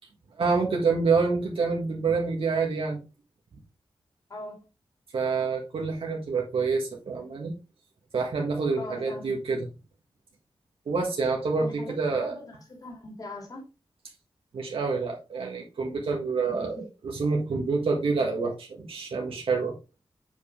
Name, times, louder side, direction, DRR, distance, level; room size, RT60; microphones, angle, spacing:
voice 1, 0.3-3.0 5.1-7.5 8.1-9.7 10.8-12.3 14.5-19.7, right 4 dB, 80° right, 1.7 m, -27 dB
voice 2, 8.8-9.3 11.6-13.6 16.5-16.8, left 2 dB, 40° left, 2.9 m, -41 dB
8.1 x 5.0 x 3.6 m
wide cardioid pair, 155°, 9 cm